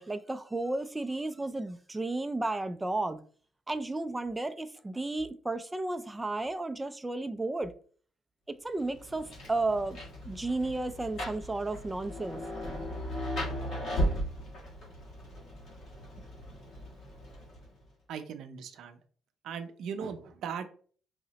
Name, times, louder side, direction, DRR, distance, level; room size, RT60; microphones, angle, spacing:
voice 1, 0.0-3.2 3.7-7.7 8.6-10.0 10.2-12.4, right 2 dB, 15° right, 0.3 m, -33 dB
Rain, 8.8-17.8, equal, 60° left, 1.4 m, -37 dB
voice 2, 18.1-19.0 19.4-20.7, right 7 dB, 70° right, 0.5 m, -38 dB
4.8 x 2.0 x 2.8 m
cardioid pair, 110°, 0 cm